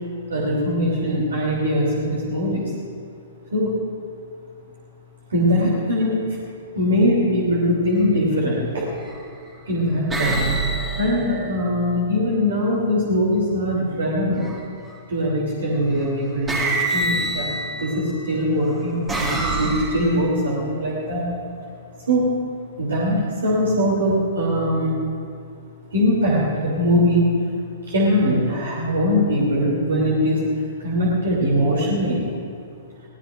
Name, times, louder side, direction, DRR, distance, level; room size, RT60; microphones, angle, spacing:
voice 1, 0.3-2.6 3.5-3.7 5.3-6.4 6.7-8.9 9.7-10.5 11.0-14.5 15.1-17.5 17.8-21.3 22.1-22.3 22.8-25.0 25.9-27.2 27.9-30.4 30.8-32.2, equal, 65° right, -4 dB, 3.3 m, -21 dB
sound 1, 7.8-8.1 9.0-9.5 10.1-12.1 14.3-14.9 15.9-16.1 16.5-18.1 18.7-20.4, right 2 dB, 10° right, 2.0 m, -27 dB
22.0 x 17.5 x 2.6 m, 2.4 s
figure-of-eight pair, 110°, 0 cm